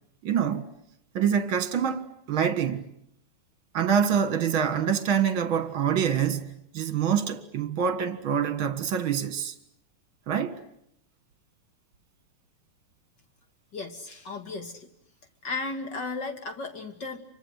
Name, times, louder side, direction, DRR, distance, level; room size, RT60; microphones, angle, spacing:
voice 1, 0.2-0.7 1.1-2.9 3.7-9.5 10.3-10.6, right 8 dB, 45° right, 2.2 m, -26 dB
voice 2, 13.7-14.9 15.4-17.2, left 3 dB, 35° left, 2.8 m, -35 dB
30.0 x 25.0 x 8.0 m
omnidirectional pair, 3.5 m